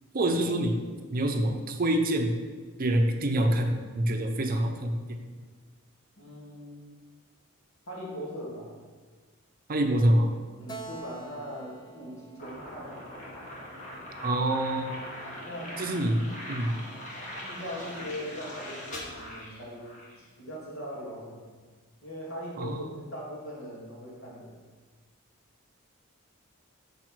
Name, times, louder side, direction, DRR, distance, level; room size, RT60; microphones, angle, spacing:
voice 1, 0.1-0.8 1.1-2.4 2.8-5.2 9.7-10.3 14.2-15.1 15.8-16.8 22.6-23.0, right 1 dB, 40° right, 4 dB, 0.5 m, -26 dB
voice 2, 6.2-6.9 7.9-8.8 10.6-13.0 13.9-14.2 15.5-15.9 17.4-19.9 20.2-21.5 22.0-24.5, equal, 65° left, -5 dB, 2.3 m, -40 dB
Keyboard (musical), 10.7-14.1, right 4 dB, 20° left, 0.4 m, -47 dB
sound 1, 12.4-20.2, left 1 dB, 35° left, 1.3 m, -41 dB
5.3 x 4.6 x 5.9 m, 1.4 s
head